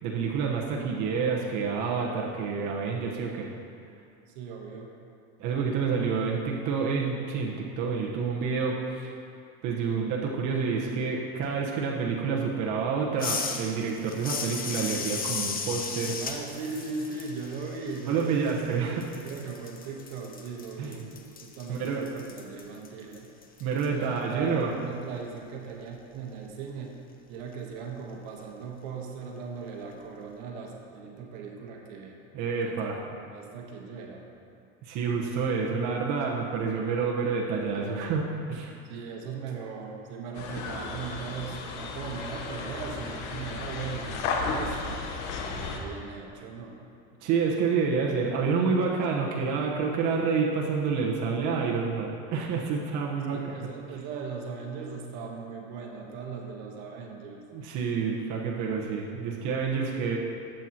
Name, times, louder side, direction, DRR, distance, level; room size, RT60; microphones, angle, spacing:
voice 1, 0.0-3.5 5.4-9.1 9.6-16.2 18.1-19.1 20.8-20.9 21.7-22.1 23.6-24.7 32.3-33.0 34.8-38.7 47.2-53.6 57.5-60.2, right 5 dB, 60° right, -2 dB, 1.1 m, -28 dB
voice 2, 4.3-4.9 16.2-18.5 19.1-23.3 23.9-26.9 27.3-32.2 32.6-34.3 38.8-45.0 45.4-46.8 53.3-57.4, right 5 dB, 75° right, 1 dB, 1.3 m, -39 dB
sound 1, 13.2-18.7 19.0-23.9, left 5 dB, 25° left, 0.8 m, -36 dB
sound 2, 40.3-45.8, left 4 dB, 85° left, 1.1 m, -34 dB
11.5 x 7.9 x 2.9 m, 2.5 s
supercardioid pair, 115°, 34 cm